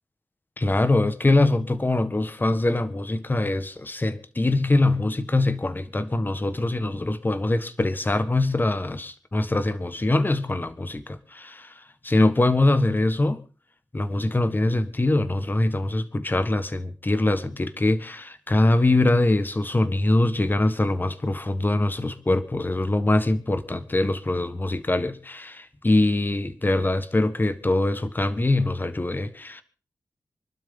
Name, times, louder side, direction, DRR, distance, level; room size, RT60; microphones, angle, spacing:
voice 1, 0.6-11.7 12.0-13.4 13.9-29.6, left 2 dB, 25° left, 1.5 m, -23 dB
26.0 x 12.0 x 3.8 m
wide cardioid pair, 90°, 7 cm